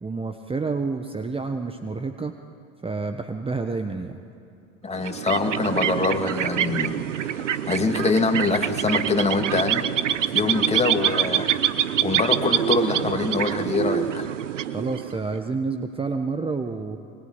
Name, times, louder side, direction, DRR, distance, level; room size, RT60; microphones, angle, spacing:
voice 1, 0.0-2.3 2.8-4.2 14.7-17.0, right 4 dB, 15° right, 7 dB, 1.3 m, -29 dB
voice 2, 4.8-6.9 7.2-11.5 11.8-14.3, left 4 dB, 15° left, 4 dB, 2.8 m, -25 dB
sound 1, 5.0-15.4, right 10 dB, 90° right, 0.9 m, -25 dB
23.5 x 23.0 x 9.8 m, 2.7 s
hypercardioid pair, 85°, 36 cm